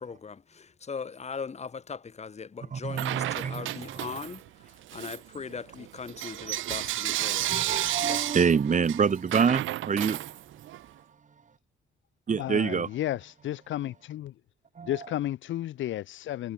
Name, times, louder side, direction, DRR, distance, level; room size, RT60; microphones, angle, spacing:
voice 1, 0.0-4.4 4.9-7.7 8.0-8.2, left 5 dB, 35° left, 1.5 m, -39 dB
voice 2, 2.7-4.2 7.2-10.3 12.3-12.9 14.8-14.9, right 6 dB, 40° right, 1.8 m, -27 dB
Bell / Coin (dropping), 2.9-4.5 4.9-10.8, right 15 dB, 80° right, 0.9 m, -32 dB
voice 3, 12.4-14.3 14.8-16.5, left 13 dB, 75° left, 1.3 m, -33 dB
cardioid pair, 90°, 20 cm